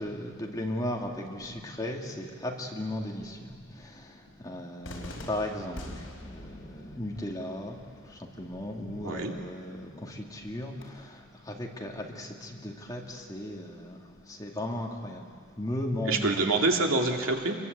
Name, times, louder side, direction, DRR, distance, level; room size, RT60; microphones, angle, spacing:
voice 1, 0.0-16.4, left 1 dB, 15° left, 0 dB, 2.5 m, -36 dB
Cheering / Fireworks, 4.8-10.8, left 1 dB, 65° left, 4.6 m, -46 dB
voice 2, 9.0-9.3 16.0-17.6, right 3 dB, 75° right, 2 dB, 2.6 m, -26 dB
27.5 x 22.5 x 8.1 m, 2.1 s
head